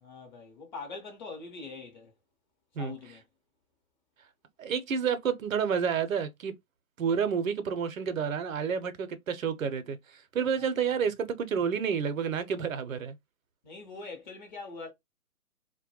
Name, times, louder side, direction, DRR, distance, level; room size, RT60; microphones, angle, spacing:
voice 1, 0.0-2.1 2.8-3.2 13.6-14.9, left 4 dB, 30° left, 0.8 m, -43 dB
voice 2, 4.6-6.5 7.0-13.2, right 7 dB, 65° right, 0.6 m, -30 dB
2.2 x 2.0 x 2.9 m
figure-of-eight pair, 130°, 43 cm